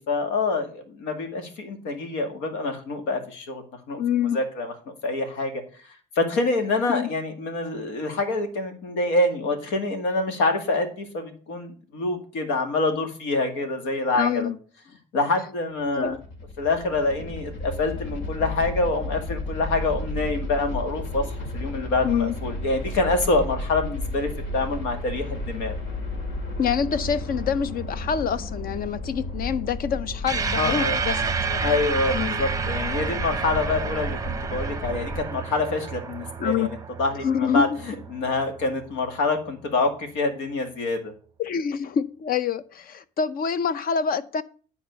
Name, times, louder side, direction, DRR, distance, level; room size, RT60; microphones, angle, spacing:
voice 1, 0.1-4.0 4.3-5.6 5.9-14.5 15.1-16.2 16.6-25.8 30.6-31.0 31.6-41.1, left 3 dB, 90° left, 2.0 m, -26 dB
voice 2, 4.0-4.4 6.9-7.1 14.1-14.6 16.0-16.2 22.0-22.3 26.6-31.2 31.5-31.6 32.1-32.4 36.4-36.7 37.2-37.8 41.4-44.4, left 7 dB, 50° left, 0.7 m, -26 dB
sound 1, 15.8-35.2, left 1 dB, 70° left, 2.4 m, -33 dB
sound 2, 30.3-38.9, right 5 dB, 20° right, 0.7 m, -30 dB
10.0 x 4.2 x 6.8 m
cardioid pair, 110°, 19 cm